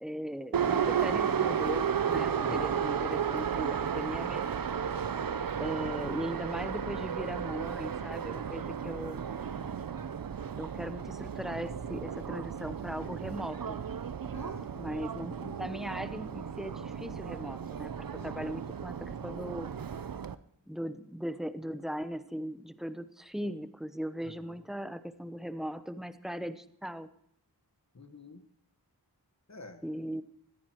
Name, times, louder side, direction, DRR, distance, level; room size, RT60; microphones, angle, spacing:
voice 1, 0.0-4.5 5.6-9.2 10.6-13.8 14.7-17.9 18.2-19.7 20.7-27.1 29.8-30.2, equal, ahead, 11 dB, 0.8 m, -38 dB
Subway metro underground, 0.5-20.3, right 7 dB, 55° right, 0.6 m, -34 dB
voice 2, 14.3-14.7 18.1-18.4 24.2-24.6 27.9-28.5 29.5-29.8, left 2 dB, 40° left, 8 dB, 1.4 m, -48 dB
20.5 x 14.0 x 3.0 m, 0.70 s
wide cardioid pair, 65°, 40 cm